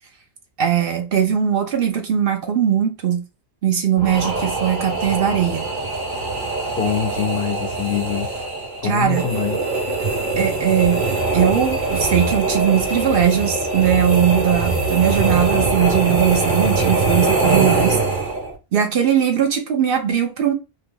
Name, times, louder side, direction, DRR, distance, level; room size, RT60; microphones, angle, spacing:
voice 1, 0.6-3.2 3.6-5.7 8.8-9.2 10.4-11.0 11.3-18.0 18.7-20.5, right 9 dB, 70° right, 0.8 m, -19 dB
sound 1, 4.0-18.6, right 3 dB, 50° right, 1.0 m, -22 dB
voice 2, 6.8-8.3 8.8-9.6, left 8 dB, 80° left, 1.0 m, -24 dB
2.8 x 2.4 x 3.5 m
omnidirectional pair, 1.0 m